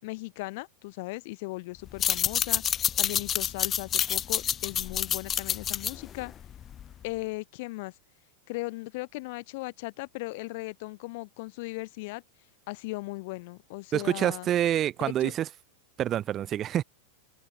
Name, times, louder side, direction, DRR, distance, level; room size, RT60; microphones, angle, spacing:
voice 1, 0.0-6.3 7.0-7.9 8.5-12.2 12.7-14.5 15.0-15.3, left 24 dB, 50° left, 4.8 m, -37 dB
sound 1, 1.9-7.0, left 9 dB, 25° left, 2.7 m, -28 dB
voice 2, 13.9-15.5 16.0-16.8, right 11 dB, 30° right, 2.5 m, -27 dB
open air
figure-of-eight pair, 90°, 0 cm